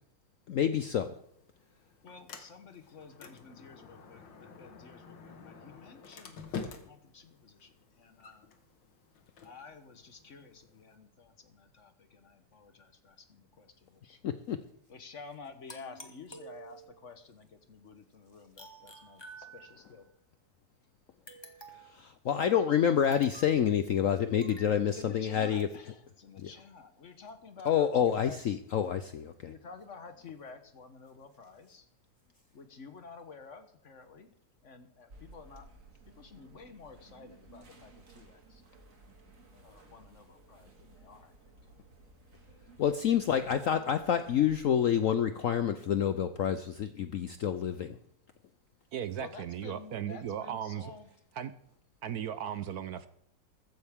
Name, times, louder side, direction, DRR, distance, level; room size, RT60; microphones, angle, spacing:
voice 1, 0.5-1.2 14.2-14.6 21.7-25.9 26.4-26.5 27.7-29.5 42.8-48.0, left 9 dB, 65° left, 10 dB, 0.8 m, -28 dB
Sliding door, 1.0-11.0, left 5 dB, 85° left, 2.1 m, -48 dB
voice 2, 2.0-8.5 9.4-14.2 14.9-20.1 24.9-28.6 29.4-31.9 32.5-34.3 34.6-35.7 36.2-38.6 39.6-41.7 49.1-51.1, left 4 dB, 50° left, 8 dB, 1.2 m, -51 dB
sound 1, 15.7-17.1 18.6-20.0 21.3-22.0 23.1-23.6 24.4-24.8, right 2 dB, 15° left, 1.3 m, -50 dB
sound 2, 35.1-44.6, right 2 dB, 45° right, 2.2 m, -57 dB
voice 3, 48.9-50.9 51.4-51.5 52.0-53.1, right 9 dB, 70° right, 12 dB, 1.0 m, -36 dB
14.5 x 14.5 x 3.6 m, 0.70 s
omnidirectional pair, 2.0 m